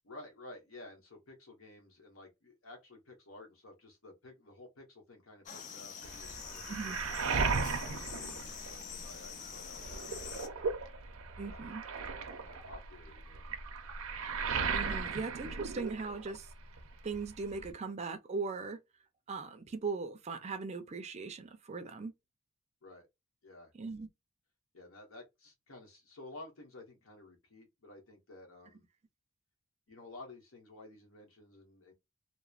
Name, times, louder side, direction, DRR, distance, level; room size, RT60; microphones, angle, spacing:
voice 1, 0.0-6.7 7.0-10.7 11.4-13.5 22.8-23.1 23.4-23.7 24.7-28.9 29.9-31.9, left 2 dB, 75° left, 1.1 m, -53 dB
sound 1, 5.5-10.5, left 7 dB, 35° left, 0.4 m, -46 dB
Waves surf, 6.0-9.2 9.6-16.5 16.8-17.7, right 5 dB, 80° right, 0.6 m, -36 dB
voice 2, 11.4-11.8 14.7-16.5 17.0-18.8 19.3-22.1 23.8-24.1, right 4 dB, 30° right, 0.4 m, -39 dB
2.9 x 2.0 x 2.4 m
head